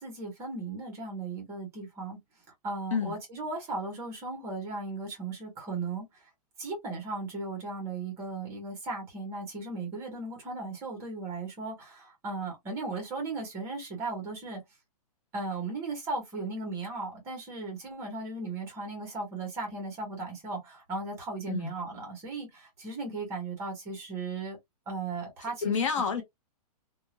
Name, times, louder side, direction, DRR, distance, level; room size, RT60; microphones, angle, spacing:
voice 1, 0.0-2.2 2.6-6.1 6.6-14.6 15.3-24.6 24.9-25.8 26.1-26.2, right 3 dB, 15° right, 0.8 m, -36 dB
voice 2, 25.6-26.2, left 6 dB, 55° left, 0.5 m, -28 dB
2.2 x 2.1 x 2.9 m
hypercardioid pair, 175°, 20 cm